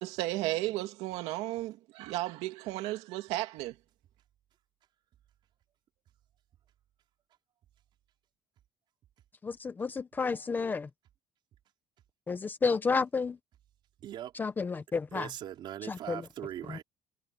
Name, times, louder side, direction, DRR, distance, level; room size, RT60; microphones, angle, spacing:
voice 1, 0.0-3.7, right 17 dB, 85° right, 2.3 m, -34 dB
voice 2, 9.4-10.9 12.3-13.4 14.3-15.3 15.9-16.2 16.7-16.8, left 4 dB, 20° left, 0.7 m, -31 dB
voice 3, 14.0-14.3 15.1-16.8, right 11 dB, 50° right, 4.5 m, -40 dB
cardioid pair, 170°, 11 cm